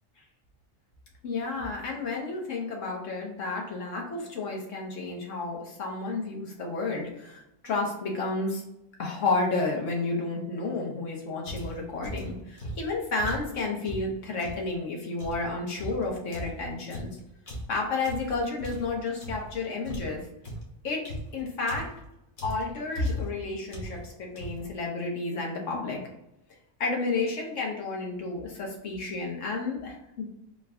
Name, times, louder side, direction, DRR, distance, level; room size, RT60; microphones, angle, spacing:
voice 1, 1.2-8.6 9.0-17.1 17.7-20.3 20.8-21.1 21.3-21.9 22.4-26.0 26.8-30.3, left 3 dB, 90° left, -1 dB, 1.4 m, -31 dB
sound 1, 11.5-14.7 15.2-19.6 19.8-22.0 22.4-22.8 23.0-23.4 23.7-24.1 24.4-24.8, right 1 dB, 60° left, 1.2 m, -39 dB
3.8 x 2.3 x 3.7 m, 0.86 s
omnidirectional pair, 1.2 m